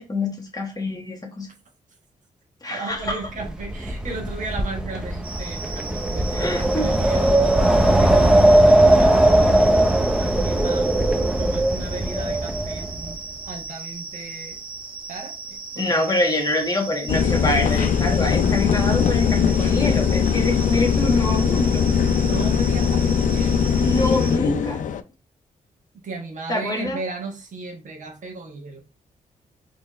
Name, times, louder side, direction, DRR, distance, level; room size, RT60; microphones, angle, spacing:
voice 1, 0.0-1.5 2.6-3.2 6.3-6.9 15.8-21.8 23.8-24.8 26.5-27.0, left 2 dB, 25° left, 2 dB, 1.4 m, -25 dB
voice 2, 2.7-7.4 7.8-9.7 10.2-10.9 11.4-13.2 13.4-14.6 15.1-16.2 17.5-17.9 22.2-23.7 25.9-28.8, right 3 dB, 65° right, 2 dB, 1.3 m, -35 dB
Wind, 3.0-13.1, right 1 dB, 5° right, 0.7 m, -19 dB
sound 1, 5.2-24.4, right 4 dB, 40° right, 1.0 m, -37 dB
sound 2, 17.1-25.0, left 7 dB, 70° left, 0.4 m, -20 dB
4.4 x 3.2 x 3.1 m, 0.31 s
cardioid pair, 80°, 14 cm